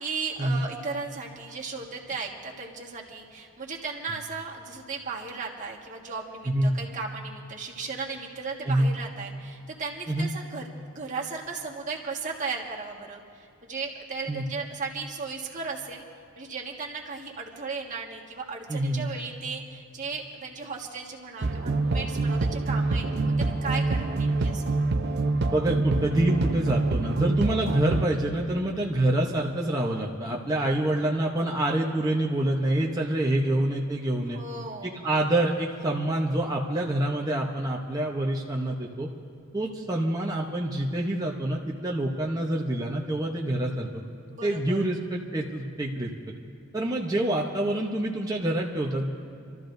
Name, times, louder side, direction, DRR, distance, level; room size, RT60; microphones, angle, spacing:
voice 1, 0.0-16.0 16.3-24.7 30.6-31.0 34.3-35.0 44.3-44.8, right 4 dB, 35° right, -2 dB, 1.6 m, -36 dB
voice 2, 18.7-19.1 25.5-34.4 34.8-39.1 39.5-44.0 44.4-46.1 46.7-49.1, right 1 dB, 15° right, -2 dB, 0.8 m, -26 dB
sound 1, 21.4-28.1, right 3 dB, 50° right, 0.6 m, -26 dB
29.5 x 13.5 x 2.6 m, 2.5 s
head